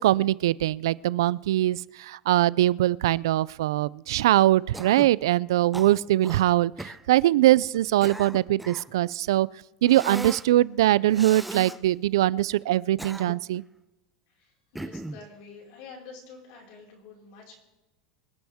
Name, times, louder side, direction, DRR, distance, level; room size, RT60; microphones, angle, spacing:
voice 1, 0.0-9.5 9.8-13.6, right 14 dB, 85° right, 0.3 m, -22 dB
Cough, 4.7-5.2 5.7-6.4 6.8-7.0 7.7-8.9 9.9-10.5 11.1-11.8 12.7-13.6 14.8-15.2, right 1 dB, 5° right, 0.4 m, -38 dB
voice 2, 14.3-17.6, left 4 dB, 50° left, 5.1 m, -47 dB
25.5 x 10.5 x 3.6 m
supercardioid pair, 170°, 2 cm